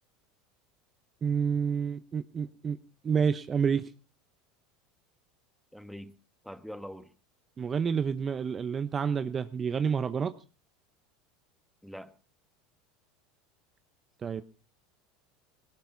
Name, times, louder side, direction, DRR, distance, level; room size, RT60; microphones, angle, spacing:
voice 1, 1.2-2.8 3.0-3.9 7.6-10.3 14.2-14.4, right 6 dB, 30° right, 0.8 m, -29 dB
voice 2, 5.7-6.1 6.4-7.1 11.8-12.1, equal, ahead, 1.3 m, -43 dB
20.5 x 17.5 x 2.7 m
hypercardioid pair, 95°, 0 cm